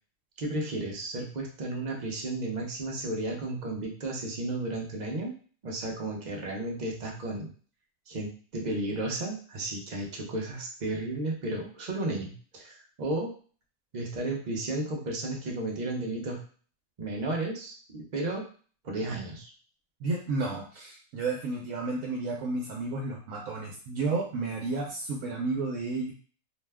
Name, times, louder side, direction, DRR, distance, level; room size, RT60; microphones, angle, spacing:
voice 1, 0.4-5.3 5.6-7.5 8.1-13.3 13.9-16.4 17.0-18.4 18.8-19.5, right 2 dB, 45° right, 0 dB, 0.6 m, -33 dB
voice 2, 20.0-26.1, right 3 dB, 80° right, 0 dB, 1.0 m, -32 dB
2.6 x 2.1 x 3.3 m, 0.42 s
omnidirectional pair, 1.4 m